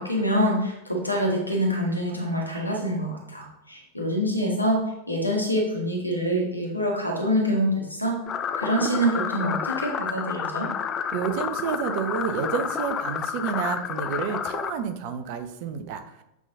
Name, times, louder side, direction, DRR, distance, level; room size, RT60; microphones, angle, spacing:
voice 1, 0.0-4.8 5.1-8.2 8.6-10.7, equal, 85° left, 0 dB, 1.6 m, -25 dB
sound 1, 8.3-14.7, left 7 dB, 25° left, 0.5 m, -30 dB
voice 2, 11.1-16.0, right 7 dB, 45° right, 9 dB, 0.7 m, -29 dB
7.4 x 4.0 x 3.8 m, 0.88 s
figure-of-eight pair, 90°, 0 cm